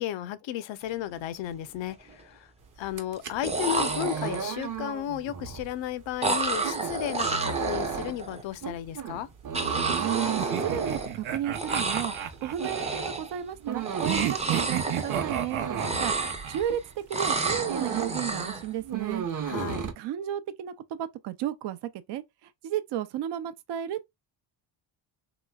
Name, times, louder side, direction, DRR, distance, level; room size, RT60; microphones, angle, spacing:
voice 1, 0.0-2.5 2.8-9.3 19.4-19.8, left 12 dB, 70° left, 0.6 m, -34 dB
sound 1, 1.0-1.2 1.5-2.1 3.2-3.3 3.4-4.6 6.2-8.4 9.5-11.3 11.5-12.3 12.6-13.4 13.8-15.5 15.7-16.7 17.1-18.7, right 3 dB, 15° right, 0.5 m, -30 dB
sound 2, 2.8-16.9 17.3-18.2 18.5-19.9, right 7 dB, 40° right, 0.9 m, -35 dB
voice 2, 10.0-12.1 12.4-16.1 16.5-19.3 20.0-21.8 22.1-22.2 22.6-24.1, right 11 dB, 60° right, 0.6 m, -33 dB
sound 3, 10.4-13.1 14.0-16.6, right 10 dB, 85° right, 0.8 m, -32 dB
3.1 x 3.0 x 2.2 m
cardioid pair, 100°, 47 cm